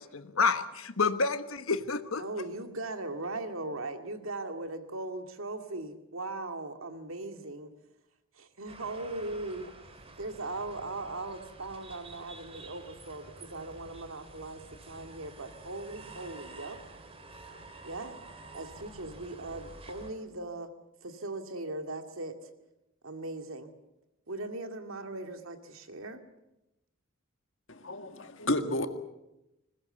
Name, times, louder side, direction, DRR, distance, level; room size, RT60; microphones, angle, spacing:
voice 1, 0.0-2.2, left 4 dB, 85° left, 11 dB, 1.3 m, -29 dB
voice 2, 2.2-7.7 8.3-16.8 17.8-18.2 18.5-20.7 21.0-22.5 23.0-23.7 24.3-26.2, right 2 dB, 80° right, 6 dB, 2.2 m, -39 dB
sound 1, 8.7-20.1, right 2 dB, 30° right, 2.8 m, -50 dB
voice 3, 27.7-28.9, left 1 dB, 65° left, 7 dB, 2.0 m, -31 dB
21.0 x 20.0 x 8.0 m, 0.93 s
head